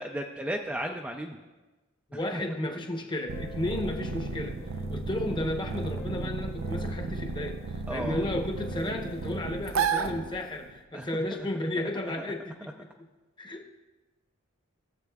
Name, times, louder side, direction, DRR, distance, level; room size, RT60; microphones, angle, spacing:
voice 1, 0.0-1.4 2.3-2.4 7.9-8.3 10.9-11.5 12.2-12.3, right 1 dB, 5° right, 2 dB, 0.3 m, -35 dB
voice 2, 2.1-4.6 4.9-13.1 13.4-13.7, left 1 dB, 20° left, 3 dB, 0.8 m, -33 dB
sound 1, 3.3-10.6, left 2 dB, 55° left, 1.0 m, -49 dB
sound 2, 3.3-10.8, right 4 dB, 75° right, 0.5 m, -33 dB
16.5 x 7.2 x 2.3 m, 1.2 s
head